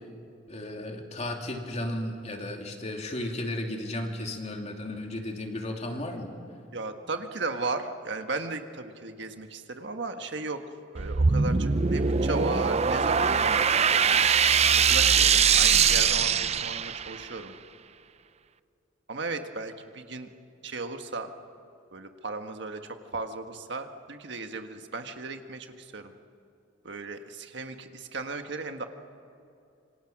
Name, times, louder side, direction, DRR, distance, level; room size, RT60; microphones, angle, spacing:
voice 1, 0.5-6.3, left 1 dB, 35° left, 2 dB, 2.8 m, -34 dB
voice 2, 6.7-10.6 10.9-14.3 14.9-17.5 19.1-20.3 20.6-21.3 21.9-26.1 26.8-28.9, right 3 dB, 65° right, 6 dB, 1.6 m, -35 dB
sound 1, 11.0-17.3, right 6 dB, 35° right, 0.6 m, -22 dB
27.0 x 25.5 x 6.1 m, 2.6 s
head